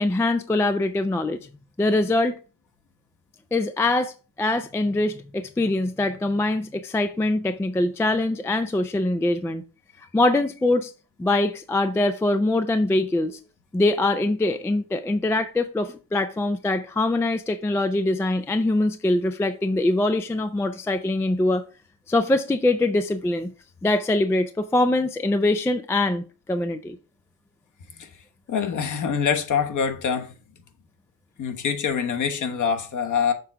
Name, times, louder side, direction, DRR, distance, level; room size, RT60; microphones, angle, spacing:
voice 1, 0.0-1.4 1.8-2.4 3.5-9.6 10.1-10.9 11.2-13.4 13.7-21.6 22.1-23.5 23.8-27.0, left 2 dB, 5° left, 0.3 m, -23 dB
voice 2, 28.5-30.3 31.4-33.3, left 7 dB, 45° left, 1.2 m, -25 dB
6.7 x 3.8 x 4.5 m
cardioid pair, 105°, 42 cm